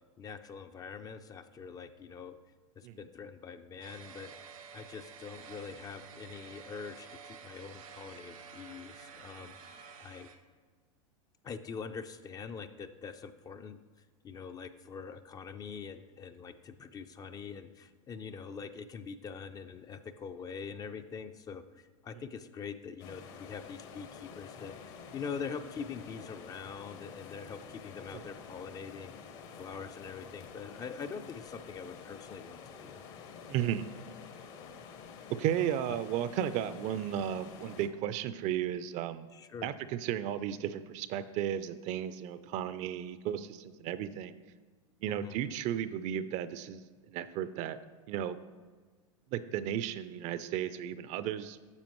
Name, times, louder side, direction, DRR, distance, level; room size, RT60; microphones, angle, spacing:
voice 1, 0.2-2.4 2.8-4.4 4.7-9.7 10.0-10.3 11.4-13.8 14.2-33.0 35.9-36.0 39.3-39.7 45.1-45.4, left 6 dB, 20° left, 9 dB, 0.4 m, -44 dB
sound 1, 3.8-10.4, right 6 dB, 85° right, 1.0 m, -50 dB
sound 2, 23.0-37.9, left 6 dB, 55° left, 1.0 m, -49 dB
voice 2, 33.5-33.9 35.4-39.3 39.6-44.3 45.0-47.8 48.1-48.4 49.3-51.6, right 10 dB, 45° right, 13 dB, 0.4 m, -34 dB
9.6 x 6.9 x 3.1 m, 1.5 s
hypercardioid pair, 100°, 17 cm